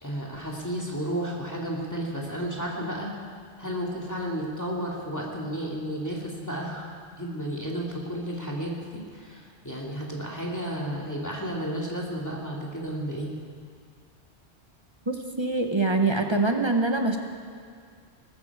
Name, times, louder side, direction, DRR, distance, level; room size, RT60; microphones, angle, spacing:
voice 1, 0.0-3.1 3.6-6.9 7.2-13.3, equal, 15° left, -3 dB, 2.2 m, -32 dB
voice 2, 15.1-17.2, right 3 dB, 25° right, 4 dB, 1.0 m, -24 dB
19.5 x 14.0 x 4.8 m, 2.1 s
omnidirectional pair, 1.1 m